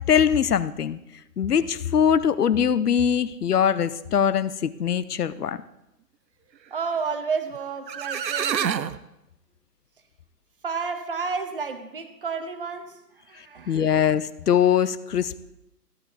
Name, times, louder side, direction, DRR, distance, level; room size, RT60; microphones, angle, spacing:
voice 1, 0.1-1.0 1.4-5.6 13.7-15.5, left 8 dB, 65° left, 16 dB, 0.8 m, -22 dB
voice 2, 6.7-8.7 10.6-13.0 13.3-14.0, right 5 dB, 35° right, 9 dB, 1.0 m, -31 dB
sound 1, 7.5-7.6 7.9-9.0, right 8 dB, 90° right, 0.8 m, -27 dB
14.5 x 11.5 x 4.1 m, 0.87 s
hypercardioid pair, 165°, 49 cm